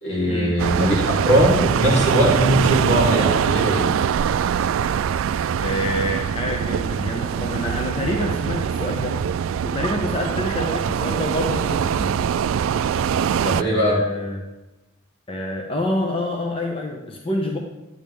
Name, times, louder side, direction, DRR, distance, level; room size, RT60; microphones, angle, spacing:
voice 1, 0.0-3.9 13.4-14.0, equal, 75° left, -5 dB, 3.7 m, -20 dB
sound 1, 0.6-13.6, right 8 dB, 75° right, 0.3 m, -23 dB
voice 2, 5.6-9.2 9.6-12.2 13.6-14.4 15.3-17.6, left 1 dB, 25° left, 1 dB, 0.8 m, -27 dB
10.5 x 8.9 x 3.4 m, 1.0 s
head